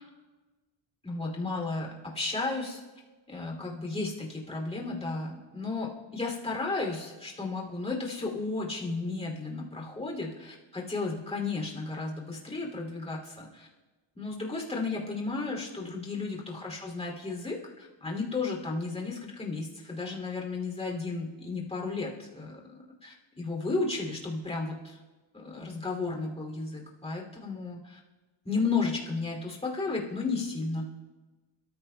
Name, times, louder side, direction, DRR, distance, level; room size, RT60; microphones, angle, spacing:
voice 1, 1.0-2.8 3.3-13.7 14.1-22.6 23.0-25.0 25.3-28.0 28.4-30.9, left 3 dB, 15° left, -1 dB, 2.7 m, -33 dB
28.5 x 14.0 x 2.3 m, 1.2 s
cardioid pair, 160°, 47 cm